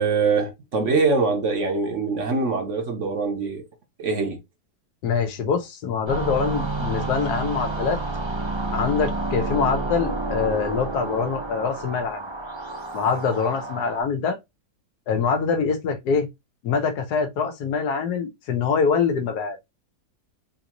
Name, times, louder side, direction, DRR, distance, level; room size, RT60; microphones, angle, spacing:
voice 1, 0.0-3.6 4.0-4.4, right 4 dB, 55° right, 1.0 m, -23 dB
voice 2, 5.0-8.0 8.7-12.2 12.9-14.4 15.1-16.3 16.6-19.6, left 6 dB, 75° left, 1.3 m, -24 dB
sound 1, 6.1-14.0, right 2 dB, 40° right, 0.4 m, -29 dB
3.9 x 2.6 x 2.9 m
omnidirectional pair, 1.7 m